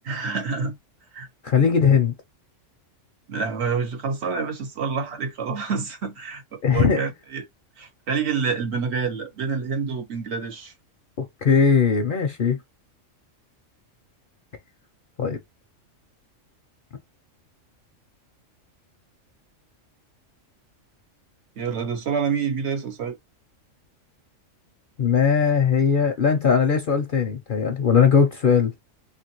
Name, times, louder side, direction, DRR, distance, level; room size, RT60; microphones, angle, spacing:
voice 1, 0.1-0.8 1.1-1.3 3.3-7.4 7.8-10.7 21.6-23.2, right 5 dB, 60° right, 1.0 m, -27 dB
voice 2, 1.4-2.1 6.6-7.0 11.4-12.6 15.2-15.4 25.0-28.7, left 6 dB, 55° left, 0.6 m, -19 dB
2.9 x 2.5 x 2.9 m
omnidirectional pair, 1.3 m